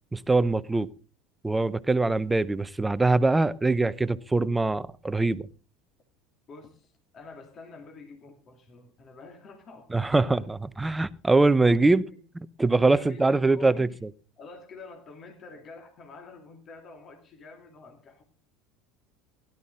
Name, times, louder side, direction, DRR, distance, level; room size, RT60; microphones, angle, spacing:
voice 1, 0.1-0.9 1.4-5.5 9.9-12.0 12.6-13.9, right 3 dB, 10° right, 0.8 m, -23 dB
voice 2, 6.5-10.5 11.4-11.5 11.8-12.2 12.8-14.0 14.4-18.2, left 3 dB, 35° left, 2.5 m, -47 dB
16.5 x 12.0 x 3.8 m
figure-of-eight pair, 70°, 0 cm